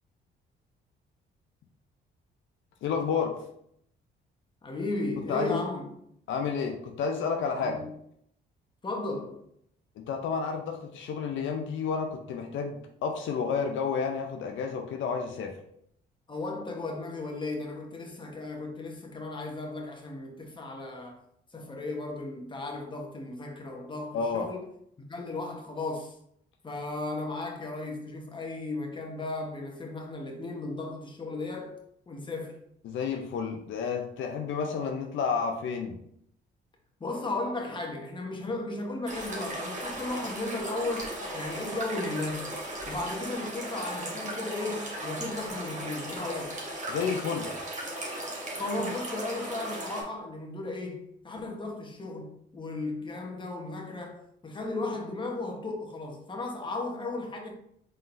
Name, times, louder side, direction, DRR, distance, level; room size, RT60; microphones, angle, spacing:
voice 1, 2.8-3.4 5.3-5.6 6.3-7.8 10.1-15.6 24.1-24.5 32.8-36.0 46.9-47.5, left 5 dB, 75° left, 0.6 m, -30 dB
voice 2, 4.6-5.9 7.6-7.9 8.8-9.4 16.3-21.2 21.5-24.6 25.1-26.1 26.6-31.7 32.1-32.6 37.0-42.5 42.9-46.5 48.5-57.5, left 2 dB, 25° left, 1.1 m, -35 dB
sound 1, 39.1-50.0, right 1 dB, 40° right, 1.5 m, -37 dB
4.4 x 3.8 x 2.6 m
cardioid pair, 90°, 20 cm